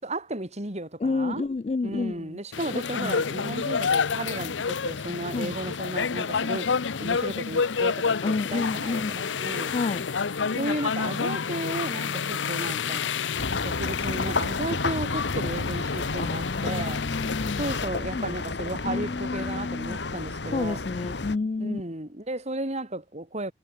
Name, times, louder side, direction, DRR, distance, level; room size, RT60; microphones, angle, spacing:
voice 1, 0.0-1.5 1.8-9.7 10.5-13.1 13.6-17.0 17.6-20.8 21.6-23.5, right 1 dB, 35° right, 4.1 m, -34 dB
voice 2, 1.0-2.3 3.0-3.2 5.3-5.5 8.2-9.3 9.7-10.1 16.1-17.7 18.1-18.4 18.8-20.0 20.5-21.8, left 3 dB, 35° left, 0.4 m, -30 dB
sound 1, 2.5-17.8, left 5 dB, 85° left, 0.7 m, -29 dB
sound 2, 13.3-21.4, left 3 dB, 70° left, 1.4 m, -31 dB
head